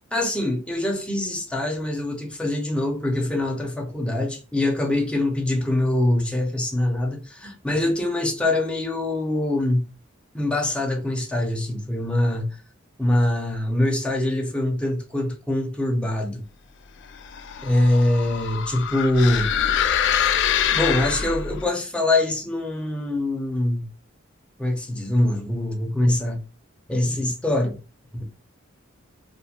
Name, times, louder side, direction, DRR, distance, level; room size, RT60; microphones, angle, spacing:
voice 1, 0.1-9.9 10.3-12.6 13.0-16.4 17.6-19.5 20.7-23.9 24.6-26.4 26.9-27.8 28.1-28.3, left 1 dB, 5° left, 0.6 m, -23 dB
sound 1, 17.2-21.6, left 9 dB, 60° left, 0.3 m, -24 dB
2.6 x 2.4 x 2.8 m
head